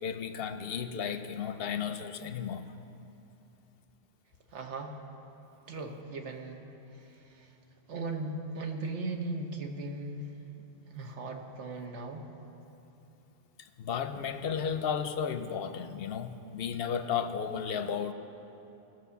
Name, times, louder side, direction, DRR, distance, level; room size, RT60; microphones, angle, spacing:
voice 1, 0.0-2.6 13.6-18.1, left 7 dB, 60° left, 9 dB, 0.7 m, -34 dB
voice 2, 4.5-5.0 5.7-6.6 6.9-7.5 7.9-10.3 10.9-12.3, right 2 dB, 70° right, 4 dB, 1.3 m, -38 dB
16.5 x 6.5 x 6.9 m, 2.9 s
omnidirectional pair, 1.3 m